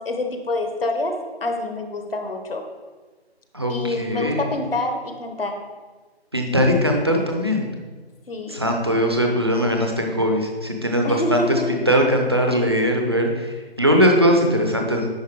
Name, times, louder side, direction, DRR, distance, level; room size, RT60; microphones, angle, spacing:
voice 1, 0.0-2.6 3.7-5.6 8.3-8.7 11.0-11.7, left 2 dB, 60° left, 4 dB, 1.2 m, -26 dB
voice 2, 3.5-4.4 6.3-7.7 8.5-15.1, equal, 25° right, 2 dB, 0.6 m, -20 dB
10.5 x 4.1 x 4.7 m, 1.4 s
figure-of-eight pair, 170°, 32 cm